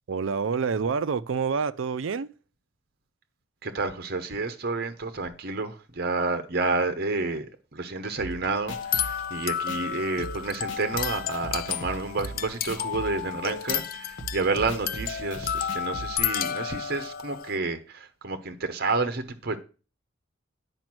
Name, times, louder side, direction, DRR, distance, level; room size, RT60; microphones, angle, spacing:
voice 1, 0.1-2.3, right 5 dB, 75° right, 0.5 m, -27 dB
voice 2, 3.6-7.5 7.7-19.6, right 3 dB, 50° right, 0.9 m, -30 dB
sound 1, 8.2-16.2, right 2 dB, 70° left, 1.4 m, -41 dB
sound 2, 8.7-17.6, left 9 dB, 45° left, 0.4 m, -32 dB
9.1 x 5.3 x 6.1 m
head